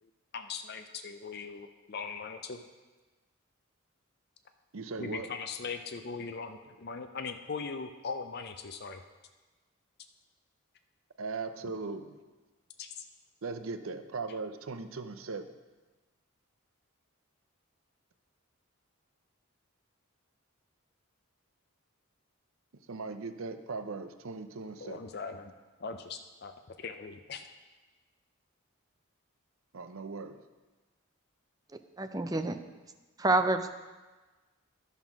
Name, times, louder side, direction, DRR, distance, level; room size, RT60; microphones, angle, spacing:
voice 1, 0.0-2.6 5.0-9.0 12.8-13.0 24.8-25.5 25.8-27.5, left 5 dB, 50° left, 7 dB, 0.5 m, -40 dB
voice 2, 4.7-5.3 11.2-12.2 13.4-15.5 22.7-25.0 29.7-30.4, right 4 dB, 75° right, 8 dB, 0.7 m, -39 dB
voice 3, 32.0-32.6 33.2-33.7, right 2 dB, 15° right, 7 dB, 0.4 m, -27 dB
11.5 x 5.6 x 6.0 m, 1.2 s
head